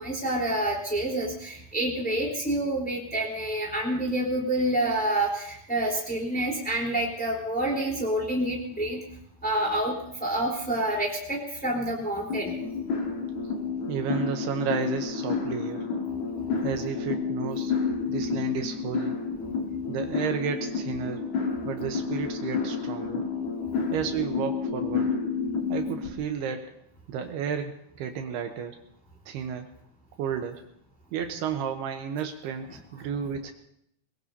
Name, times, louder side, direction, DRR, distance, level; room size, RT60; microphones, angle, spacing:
voice 1, 0.0-9.0 9.4-12.6, right 1 dB, ahead, -2 dB, 3.0 m, -28 dB
sound 1, 12.3-26.1, left 5 dB, 50° left, 2.7 m, -30 dB
voice 2, 13.9-15.9 16.6-17.7 18.1-19.2 19.9-21.2 21.6-23.2 23.9-25.2 25.7-26.7 27.1-28.8 29.3-29.7 30.2-30.7 31.1-33.5, right 7 dB, 80° right, 6 dB, 2.9 m, -32 dB
22.5 x 21.0 x 2.8 m, 0.74 s
omnidirectional pair, 4.8 m